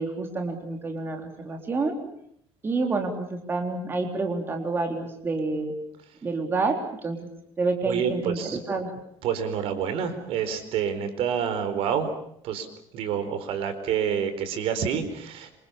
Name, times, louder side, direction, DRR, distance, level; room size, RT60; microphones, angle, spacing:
voice 1, 0.0-2.0 2.6-5.8 6.2-7.2 7.6-8.9, right 3 dB, 20° right, 3 dB, 3.7 m, -28 dB
voice 2, 7.8-8.6 9.2-12.1 12.4-12.7 12.9-15.6, right 8 dB, 65° right, 10 dB, 4.5 m, -28 dB
27.0 x 27.0 x 7.1 m, 0.69 s
cardioid pair, 160°, 10 cm